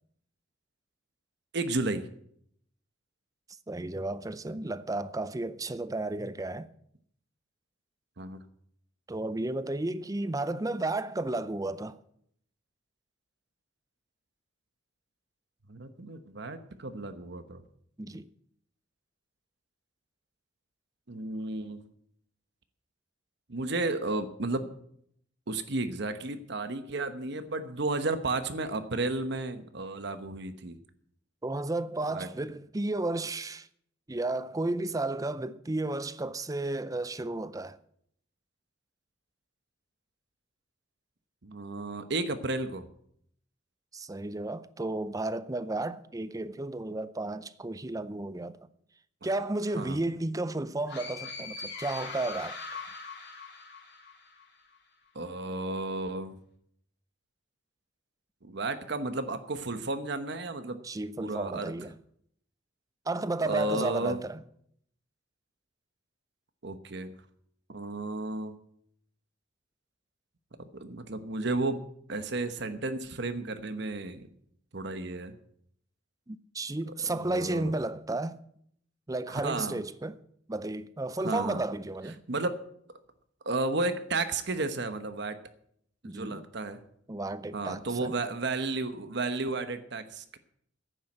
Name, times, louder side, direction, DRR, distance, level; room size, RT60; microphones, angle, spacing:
voice 1, 1.5-2.0 8.2-8.4 15.7-17.6 21.1-21.8 23.5-24.7 25.5-30.8 32.1-32.3 41.4-42.9 49.7-50.0 55.1-56.3 58.4-60.8 61.2-61.7 63.4-64.2 66.6-67.1 67.7-68.6 70.7-71.8 72.1-74.3 74.7-75.4 77.1-77.8 79.3-79.8 81.2-81.6 82.3-82.6 83.4-85.4 86.0-86.8 87.5-90.4, right 2 dB, 60° right, 1.1 m, -33 dB
voice 2, 3.7-6.7 9.1-12.0 18.0-18.3 31.4-33.7 34.1-37.8 43.9-48.6 49.2-52.8 60.8-61.9 63.1-64.4 76.3-78.4 79.1-80.2 80.5-82.2 86.0-86.4 87.1-88.1, right 2 dB, 20° right, 0.5 m, -33 dB
sound 1, 50.9-54.5, left 4 dB, 65° left, 3.2 m, -41 dB
10.5 x 9.2 x 7.9 m
head